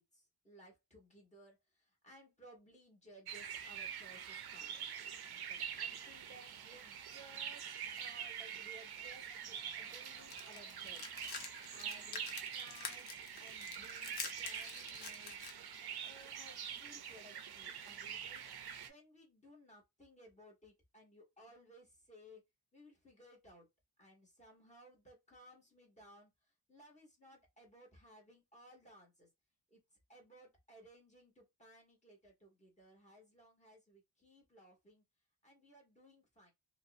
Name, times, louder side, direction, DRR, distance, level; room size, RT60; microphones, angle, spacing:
voice 1, 0.0-4.9 5.3-11.0 11.3-15.6 16.0-18.4 18.8-22.4 22.7-23.7 24.0-26.3 26.7-29.3 29.7-29.8 30.1-35.0 35.4-36.5, right 1 dB, 15° left, 1.0 m, -60 dB
sound 1, 3.3-18.9, right 8 dB, 55° right, 0.5 m, -45 dB
sound 2, 10.2-15.5, left 5 dB, 55° left, 0.6 m, -47 dB
2.6 x 2.0 x 2.5 m
wide cardioid pair, 165°, 49 cm